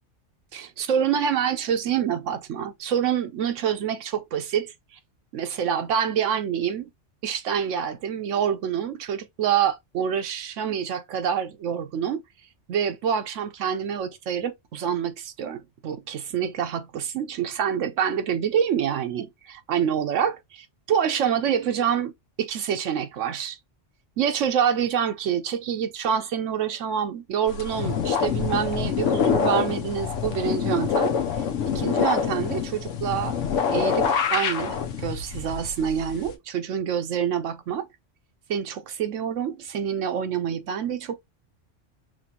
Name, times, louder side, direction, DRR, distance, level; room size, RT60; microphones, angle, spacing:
voice 1, 0.5-4.7 5.3-6.9 7.2-12.2 12.7-22.1 22.4-23.6 24.2-31.1 31.7-33.3 33.7-37.9 38.5-41.1, right 8 dB, 80° right, 1.0 m, -26 dB
sound 1, 27.5-36.3, left 7 dB, 80° left, 1.0 m, -26 dB
5.0 x 3.0 x 2.9 m
omnidirectional pair, 1.3 m